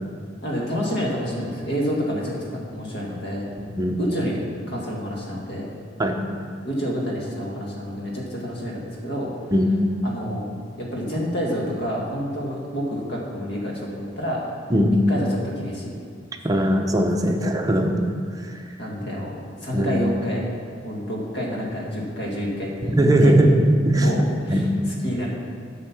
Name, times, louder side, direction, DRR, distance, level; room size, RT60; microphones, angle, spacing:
voice 1, 0.4-3.5 4.0-4.4 4.7-5.7 6.6-9.3 10.0-10.5 10.8-14.4 15.1-16.0 18.8-20.5 20.8-23.3 24.0-24.7 25.0-25.3, equal, 60° left, -3 dB, 1.8 m, -28 dB
voice 2, 16.4-17.9 18.3-18.6 19.7-19.9 22.9-24.2 24.5-24.6, right 1 dB, 20° right, 2 dB, 0.7 m, -19 dB
8.1 x 6.5 x 5.9 m, 2.1 s
head